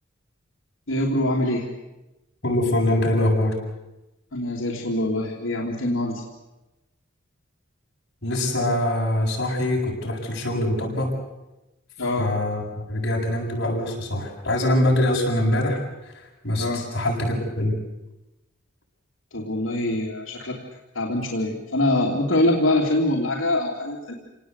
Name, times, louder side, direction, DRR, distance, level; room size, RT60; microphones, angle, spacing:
voice 1, 0.9-1.6 4.3-6.2 12.0-12.3 16.6-16.8 19.3-20.6 20.9-24.1, left 1 dB, 90° left, -1 dB, 3.1 m, -24 dB
voice 2, 2.4-3.6 8.2-11.1 12.2-17.7, left 1 dB, 55° left, -2 dB, 7.7 m, -24 dB
28.0 x 19.0 x 8.3 m, 1.0 s
head